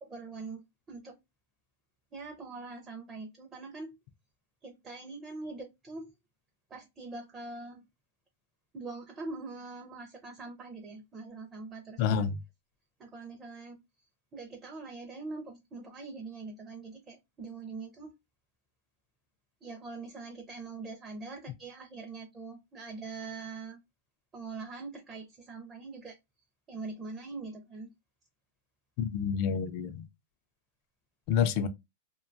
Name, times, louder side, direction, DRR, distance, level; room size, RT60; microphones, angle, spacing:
voice 1, 0.0-1.2 2.1-4.0 4.6-6.1 6.7-7.8 8.7-12.2 13.0-13.8 14.3-18.1 19.6-23.8 24.3-26.2 26.7-27.9, right 3 dB, 15° right, 0.5 m, -43 dB
voice 2, 12.0-12.3 29.0-30.1 31.3-31.7, left 7 dB, 40° left, 0.3 m, -28 dB
2.7 x 2.2 x 2.5 m
supercardioid pair, 165°, 0 cm